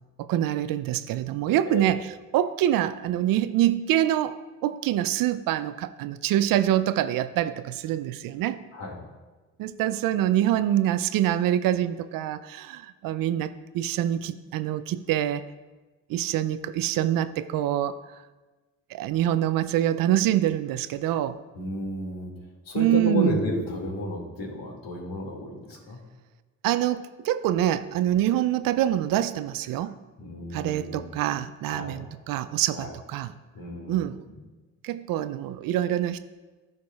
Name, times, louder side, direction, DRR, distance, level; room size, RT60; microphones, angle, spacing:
voice 1, 0.2-2.0 2.3-8.6 9.6-15.5 16.1-18.0 18.9-21.4 22.8-23.4 26.6-30.0 30.5-33.3 33.9-34.2 34.8-36.2, right 12 dB, 60° right, 13 dB, 0.5 m, -25 dB
voice 2, 8.7-9.0 21.5-22.3 22.6-26.0 30.2-31.1 31.7-32.0 32.7-32.9 33.5-34.4, left 1 dB, 65° left, -1 dB, 2.3 m, -32 dB
13.0 x 4.8 x 2.4 m, 1.2 s
hypercardioid pair, 60°, 38 cm